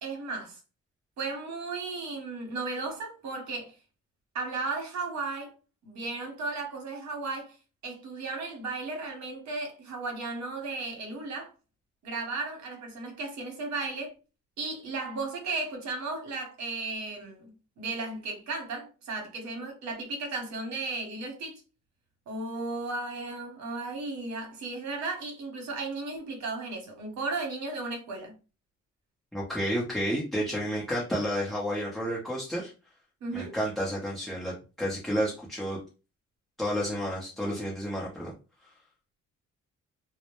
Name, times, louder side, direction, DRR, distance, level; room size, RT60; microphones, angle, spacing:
voice 1, 0.0-0.6 1.2-3.7 4.3-5.5 5.8-7.6 7.8-11.5 12.0-14.1 14.6-17.5 17.8-21.6 22.3-28.3 33.2-33.6, right 3 dB, 65° right, 0.9 m, -35 dB
voice 2, 29.3-32.7 33.3-35.8 36.6-38.3, equal, ahead, 0.7 m, -31 dB
2.0 x 2.0 x 3.0 m
cardioid pair, 90°, 30 cm